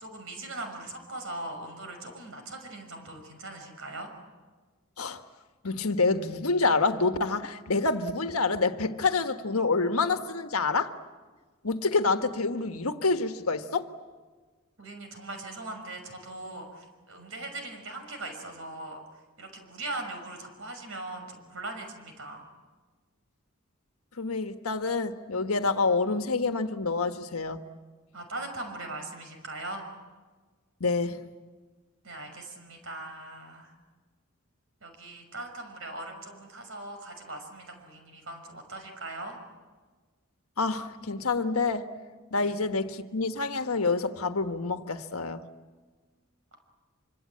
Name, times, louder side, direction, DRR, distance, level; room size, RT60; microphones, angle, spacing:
voice 1, 0.0-4.1 14.8-19.0 19.4-22.5 28.1-29.9 32.0-33.7 34.8-39.4 42.4-42.6, right 2 dB, 65° right, 5.9 m, -40 dB
voice 2, 5.6-10.9 11.6-13.9 24.2-27.6 30.8-31.2 40.6-41.9 42.3-45.4, left 3 dB, 85° left, 1.5 m, -27 dB
26.0 x 26.0 x 8.8 m
head